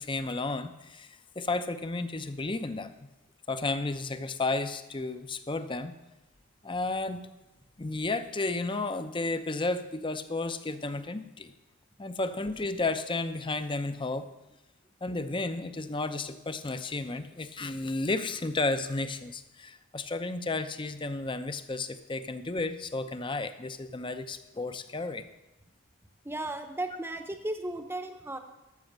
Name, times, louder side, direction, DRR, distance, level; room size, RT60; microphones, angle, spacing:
voice 1, 0.0-2.9 3.5-5.9 6.6-7.2 7.8-11.5 12.0-14.3 15.0-25.3, left 3 dB, 20° left, 11 dB, 0.6 m, -32 dB
voice 2, 26.2-28.4, right 1 dB, 10° right, 7 dB, 0.8 m, -35 dB
13.0 x 6.2 x 7.4 m, 0.99 s
head